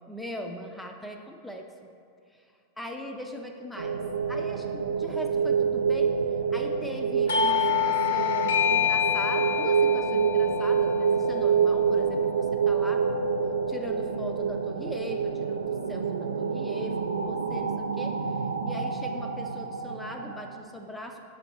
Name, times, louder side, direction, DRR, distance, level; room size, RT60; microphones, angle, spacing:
voice 1, 0.1-1.6 2.8-4.0 4.3-6.1 6.5-13.0 13.7-18.1 18.6-21.2, equal, 5° left, 3 dB, 0.4 m, -40 dB
sound 1, 3.8-20.6, right 6 dB, 75° right, 0.3 m, -27 dB
Doorbell, 7.3-12.6, left 9 dB, 60° left, 0.6 m, -28 dB
7.0 x 4.2 x 4.3 m, 2.4 s
figure-of-eight pair, 90°, 0 cm